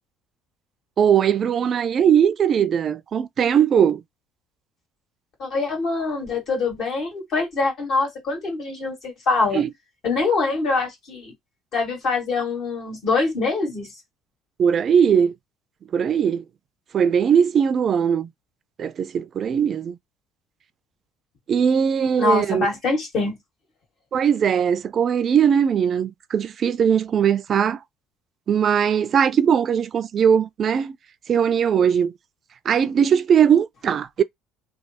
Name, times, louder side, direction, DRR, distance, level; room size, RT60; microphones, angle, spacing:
voice 1, 1.0-4.0 9.5-9.7 14.6-15.3 15.9-16.4 16.9-18.3 18.8-20.0 21.5-22.7 24.1-27.8 28.5-31.0 31.3-32.1 32.7-34.2, right 8 dB, 45° right, 0.3 m, -19 dB
voice 2, 5.4-9.6 10.0-11.3 11.7-13.9 22.2-23.4, left 3 dB, 60° left, 2.0 m, -24 dB
3.2 x 2.3 x 2.8 m
supercardioid pair, 85°, 0 cm